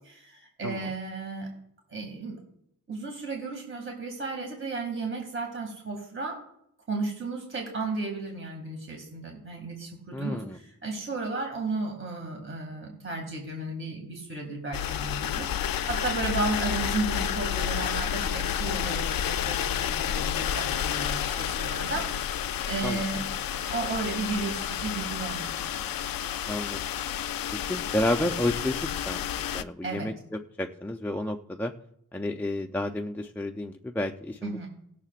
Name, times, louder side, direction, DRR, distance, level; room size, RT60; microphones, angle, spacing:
voice 1, 0.0-1.5 1.9-2.4 2.9-6.4 6.9-25.5 29.8-30.1 34.4-34.7, right 3 dB, 35° right, 1 dB, 2.4 m, -34 dB
voice 2, 10.1-10.6 22.8-23.0 26.5-26.8 27.7-30.1 30.6-31.7 32.1-34.7, left 1 dB, 5° left, 3 dB, 0.6 m, -31 dB
sound 1, 14.7-29.6, left 9 dB, 80° left, 0.6 m, -30 dB
19.0 x 6.7 x 2.5 m, 0.75 s
wide cardioid pair, 85°, 34 cm